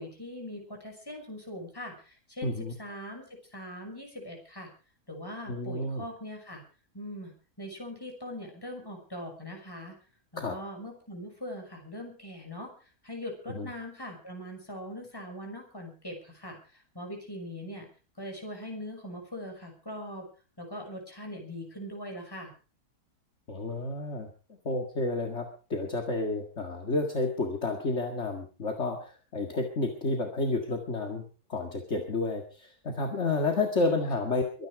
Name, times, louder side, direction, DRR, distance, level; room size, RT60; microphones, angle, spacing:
voice 1, 0.0-4.7 5.1-6.6 6.9-10.0 10.3-12.7 13.0-17.9 18.2-20.3 20.6-22.5 33.8-34.1, equal, 15° left, 2 dB, 6.1 m, -41 dB
voice 2, 2.4-2.7 5.5-6.0 10.4-10.6 13.5-13.7 23.5-31.2 31.5-34.7, left 2 dB, 50° left, 3 dB, 2.3 m, -31 dB
23.5 x 10.0 x 4.9 m, 0.36 s
omnidirectional pair, 1.6 m